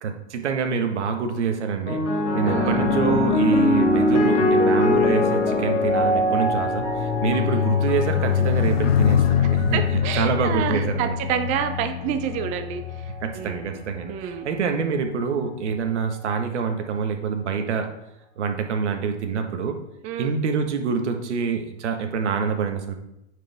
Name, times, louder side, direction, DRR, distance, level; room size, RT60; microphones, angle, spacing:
voice 1, 0.0-2.1 2.3-11.2 13.2-17.9 18.4-19.8 20.2-22.9, right 6 dB, 75° right, 5 dB, 1.4 m, -26 dB
sound 1, 1.9-10.4 11.3-11.7, left 1 dB, 90° left, 2.3 m, -23 dB
voice 2, 2.4-2.8 7.3-7.6 9.7-12.8 13.4-13.8 14.1-14.5 20.0-20.3, right 9 dB, 20° right, 9 dB, 0.5 m, -28 dB
sound 2, 2.5-14.1 14.8-15.1, left 10 dB, 60° left, 0.6 m, -26 dB
9.1 x 5.0 x 3.5 m, 0.85 s
hypercardioid pair, 145°, 35 cm